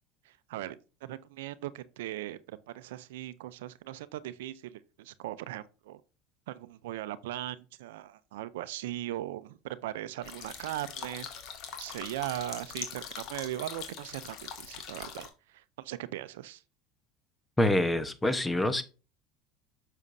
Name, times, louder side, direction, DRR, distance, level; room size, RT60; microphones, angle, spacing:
voice 1, 0.2-6.0 6.5-11.3 11.8-16.6, right 14 dB, 85° right, 0.5 m, -39 dB
sound 1, 10.2-15.3, left 7 dB, 55° left, 1.9 m, -42 dB
voice 2, 17.6-18.8, left 1 dB, 10° left, 1.0 m, -26 dB
7.1 x 6.6 x 2.7 m
supercardioid pair, 105°, 0 cm